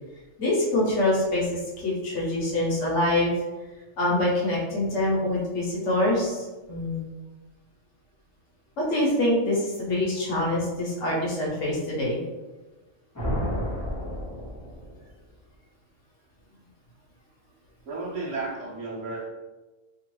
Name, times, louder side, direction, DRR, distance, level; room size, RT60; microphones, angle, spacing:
voice 1, 0.4-3.3 4.0-7.0 8.8-12.2, left 1 dB, 65° left, -4 dB, 1.2 m, -25 dB
sound 1, 13.1-15.1, equal, 25° left, 0.4 m, -31 dB
voice 2, 17.8-19.2, right 3 dB, 65° right, -4 dB, 1.0 m, -33 dB
2.9 x 2.4 x 3.0 m, 1.2 s
omnidirectional pair, 1.4 m